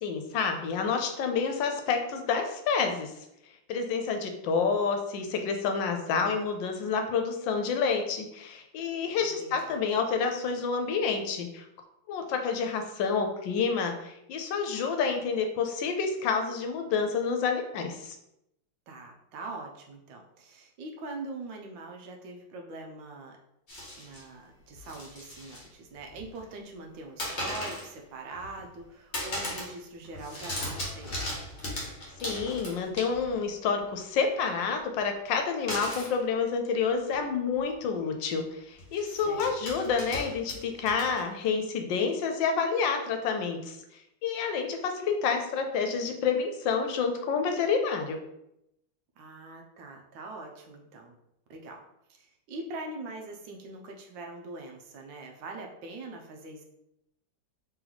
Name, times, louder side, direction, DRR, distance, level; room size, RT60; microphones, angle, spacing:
voice 1, 0.0-3.1 3.7-11.6 12.1-18.2 32.2-43.8 44.2-48.2, left 5 dB, 80° left, 5 dB, 1.3 m, -29 dB
voice 2, 9.2-9.8 18.9-23.4 24.0-31.2 39.2-39.9 49.2-51.1 51.5-51.8 52.1-56.6, right 2 dB, 80° right, 2 dB, 1.4 m, -43 dB
sound 1, 23.7-24.2 24.7-25.7 26.0-26.5 27.2-27.9 28.3-28.8 29.1-29.8 30.0-33.4 35.7-36.2 37.1-37.2 37.5-37.7 38.8-41.5, left 1 dB, 40° left, 1.2 m, -37 dB
3.6 x 3.0 x 3.9 m, 0.82 s
omnidirectional pair, 2.1 m